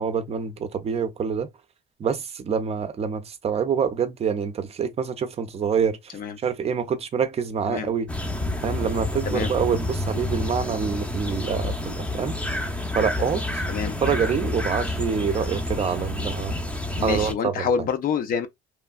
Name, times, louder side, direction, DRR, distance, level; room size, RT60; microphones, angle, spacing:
voice 1, 0.0-1.5 2.0-6.2 6.4-8.1 8.6-12.4 12.9-13.6 14.0-16.6 17.0-17.9, right 6 dB, 35° right, 0.5 m, -26 dB
sound 1, 8.1-17.3, left 1 dB, 5° left, 0.6 m, -29 dB
voice 2, 17.0-18.5, left 7 dB, 55° left, 0.6 m, -27 dB
3.1 x 2.3 x 2.3 m
cardioid pair, 110°, 17 cm